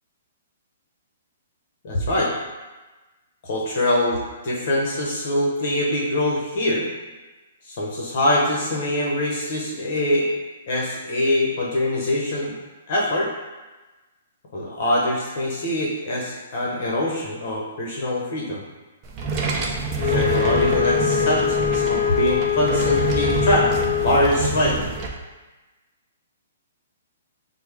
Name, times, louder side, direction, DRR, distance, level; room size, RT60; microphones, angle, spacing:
voice 1, 1.8-2.3 3.4-6.9 7.7-10.3 10.7-12.6 12.9-13.3 14.5-18.6 20.0-23.7 24.0-24.9, left 1 dB, 50° left, -3 dB, 0.8 m, -23 dB
sound 1, 19.0-25.1, right 3 dB, 25° right, 0.5 m, -26 dB
Wind instrument woodwind instrument, 20.0-24.6, left 10 dB, 85° left, 0.4 m, -23 dB
5.9 x 2.0 x 3.4 m, 1.2 s
hypercardioid pair, 155°, 0 cm